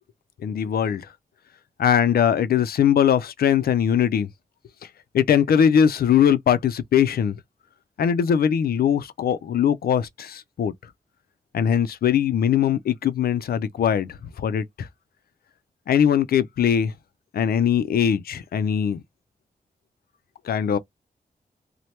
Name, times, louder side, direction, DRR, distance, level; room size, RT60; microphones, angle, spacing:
voice 1, 0.4-1.1 1.8-4.3 5.1-7.4 8.0-10.7 11.5-14.9 15.9-16.9 17.3-19.0 20.4-20.8, left 8 dB, 75° left, 0.4 m, -21 dB
3.1 x 2.1 x 2.9 m
wide cardioid pair, 150°, 16 cm